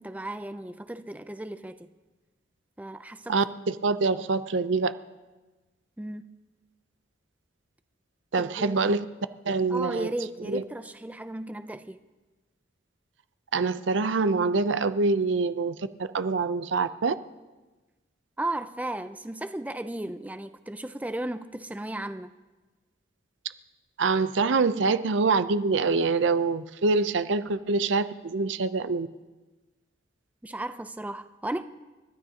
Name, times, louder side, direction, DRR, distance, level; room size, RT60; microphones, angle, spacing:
voice 1, 0.0-1.9 2.8-3.4 6.0-6.3 8.4-9.0 9.7-12.0 18.4-22.3 30.4-31.6, right 1 dB, 10° right, 0.4 m, -35 dB
voice 2, 3.3-4.9 8.3-9.0 9.5-10.1 10.5-10.6 13.5-15.8 16.1-17.1 24.0-29.1, right 4 dB, 80° right, 0.6 m, -25 dB
30.0 x 12.5 x 2.8 m
head